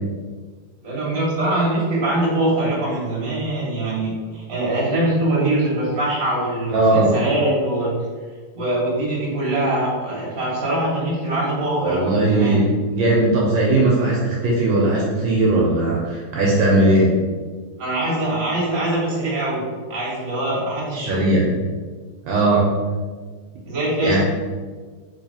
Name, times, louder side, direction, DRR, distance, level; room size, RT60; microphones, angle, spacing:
voice 1, 0.8-7.9 8.5-12.6 17.8-19.6 19.9-21.4 23.7-24.2, right 1 dB, 35° right, -6 dB, 1.0 m, -23 dB
voice 2, 6.7-7.1 11.8-17.1 21.1-21.5 22.3-22.7 24.0-24.2, right 2 dB, 75° right, -4 dB, 1.2 m, -18 dB
3.3 x 3.2 x 2.7 m, 1.5 s
omnidirectional pair, 2.2 m